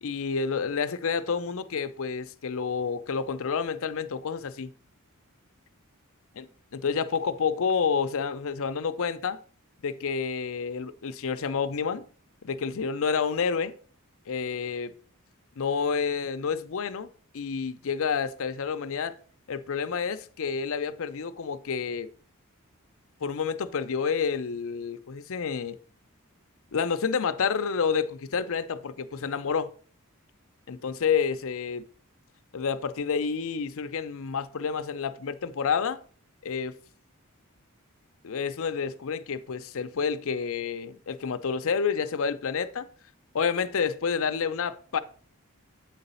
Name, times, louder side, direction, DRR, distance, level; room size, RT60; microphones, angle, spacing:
voice 1, 0.0-4.7 6.4-6.5 6.7-9.4 9.8-12.1 12.4-13.7 14.3-14.9 15.6-17.1 17.3-19.2 19.5-22.1 23.2-25.8 26.7-29.7 30.7-31.9 32.5-36.0 36.4-36.7 38.2-42.9 43.3-45.0, left 6 dB, 65° left, 0.6 m, -29 dB
8.2 x 4.0 x 5.5 m
head